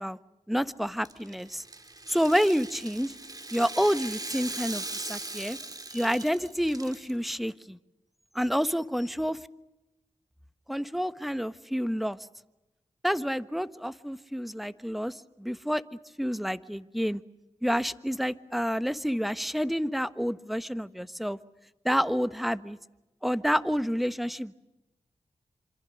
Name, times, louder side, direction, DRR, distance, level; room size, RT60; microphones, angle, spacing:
voice 1, 0.5-1.6 2.1-3.1 3.5-5.6 5.9-7.8 8.3-9.4 10.7-12.2 13.0-15.8 16.2-17.2 17.6-21.4 21.8-22.8 23.2-24.5, equal, ahead, 14 dB, 1.2 m, -29 dB
Rattle (instrument), 0.9-7.1, right 2 dB, 30° right, 2.8 m, -39 dB
27.0 x 26.0 x 6.5 m, 0.99 s
cardioid pair, 60°, 12 cm